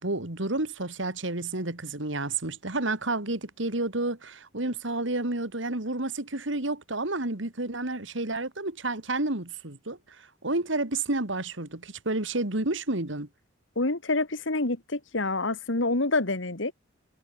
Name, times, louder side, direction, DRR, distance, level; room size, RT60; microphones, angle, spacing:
voice 1, 0.0-13.3, right 2 dB, 70° right, 2.7 m, -30 dB
voice 2, 13.8-16.7, left 2 dB, 70° left, 2.0 m, -27 dB
head